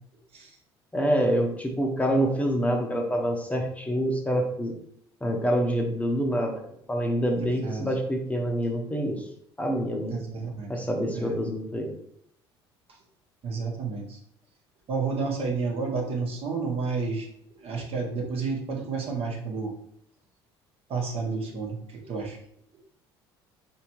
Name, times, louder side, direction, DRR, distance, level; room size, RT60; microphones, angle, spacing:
voice 1, 0.9-4.7 5.2-6.6 6.9-9.3 9.6-10.2 10.7-11.9, equal, 10° left, 2 dB, 0.8 m, -26 dB
voice 2, 7.4-7.8 10.1-10.7 11.1-11.3 13.4-14.2 14.9-17.3 17.6-19.7 20.9-21.8 22.1-22.4, right 4 dB, 50° right, 0 dB, 1.2 m, -30 dB
4.4 x 3.5 x 3.0 m, 0.70 s
hypercardioid pair, 60°, 13 cm